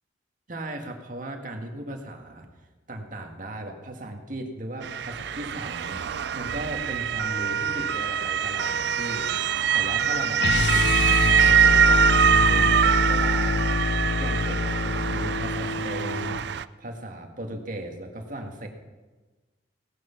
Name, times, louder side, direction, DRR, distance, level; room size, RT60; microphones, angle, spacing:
voice 1, 0.5-2.5 2.9-9.3 9.7-16.4 16.8-18.7, right 1 dB, 45° right, 3 dB, 2.0 m, -37 dB
Motor vehicle (road) / Siren, 4.8-16.6, right 8 dB, 60° right, 0.4 m, -23 dB
sound 1, 10.4-16.4, left 3 dB, 70° left, 0.6 m, -25 dB
18.0 x 11.0 x 5.9 m, 1.3 s
head